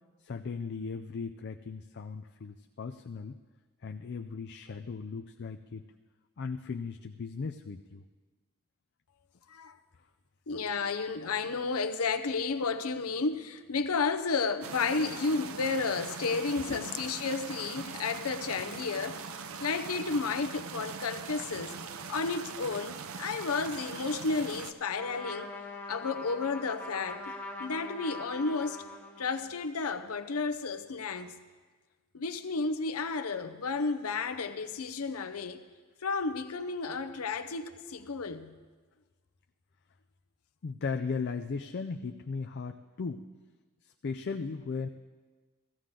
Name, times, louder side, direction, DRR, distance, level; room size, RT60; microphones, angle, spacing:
voice 1, 0.2-3.3 3.8-5.9 6.4-8.0 16.7-16.9 40.6-43.3 43.8-44.9, left 5 dB, 50° left, 0.4 m, -37 dB
voice 2, 10.5-19.3 19.6-21.8 22.1-25.5 25.9-27.3 27.6-28.8 29.2-31.4 32.1-35.6 36.0-38.6, left 4 dB, 80° left, 0.7 m, -32 dB
sound 1, 14.6-24.7, right 5 dB, 70° right, 0.6 m, -41 dB
Trumpet, 24.9-29.5, left 2 dB, 10° left, 0.9 m, -42 dB
16.0 x 14.5 x 3.8 m
head